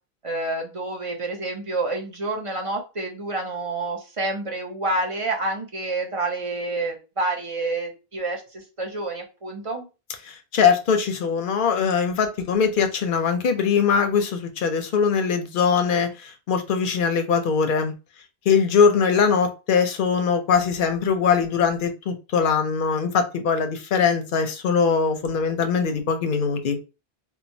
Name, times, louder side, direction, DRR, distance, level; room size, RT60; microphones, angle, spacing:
voice 1, 0.2-9.9, right 2 dB, 40° right, 0.6 m, -28 dB
voice 2, 10.2-17.9 18.5-26.8, left 6 dB, 60° left, 0.7 m, -21 dB
3.0 x 2.1 x 2.6 m
omnidirectional pair, 1.1 m